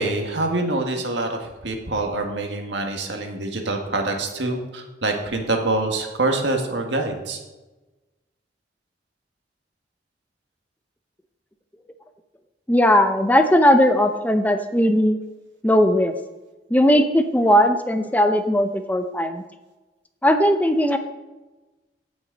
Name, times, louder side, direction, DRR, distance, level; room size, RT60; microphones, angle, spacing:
voice 1, 0.0-1.4 1.6-7.4, right 2 dB, 80° right, 3 dB, 1.7 m, -25 dB
voice 2, 12.7-15.2 15.6-16.1 16.7-19.4 20.2-21.0, equal, 10° left, 7 dB, 0.5 m, -18 dB
16.5 x 6.2 x 3.9 m, 1.1 s
head